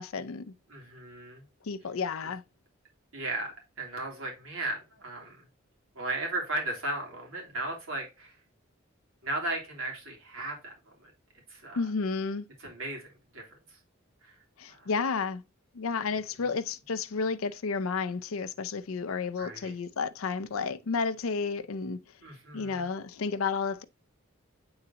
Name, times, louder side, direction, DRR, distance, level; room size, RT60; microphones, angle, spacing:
voice 1, 0.0-0.5 1.6-2.4 11.8-12.5 14.6-15.4 15.7-22.0 22.5-23.8, left 5 dB, 85° left, 0.5 m, -31 dB
voice 2, 0.7-1.4 3.1-5.4 5.9-8.4 9.2-10.7 11.5-11.8 12.6-13.4 14.2-14.4 14.7-14.9 19.4-19.7 22.2-23.0, right 2 dB, 80° right, 3.1 m, -36 dB
8.7 x 3.9 x 2.8 m
head